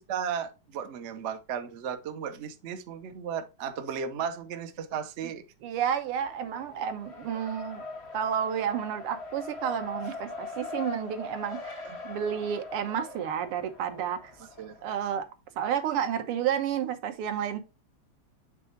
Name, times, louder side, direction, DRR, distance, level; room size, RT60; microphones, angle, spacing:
voice 1, 0.1-5.4 10.1-10.2 11.8-12.0 14.6-14.8, right 7 dB, 60° right, 0.7 m, -35 dB
voice 2, 5.6-7.8 8.1-14.3 14.8-15.3 15.6-17.6, right 9 dB, 90° right, 1.9 m, -31 dB
Race car auto racing, 6.0-15.1, left 3 dB, 35° left, 1.2 m, -42 dB
7.5 x 3.7 x 4.5 m
omnidirectional pair, 2.4 m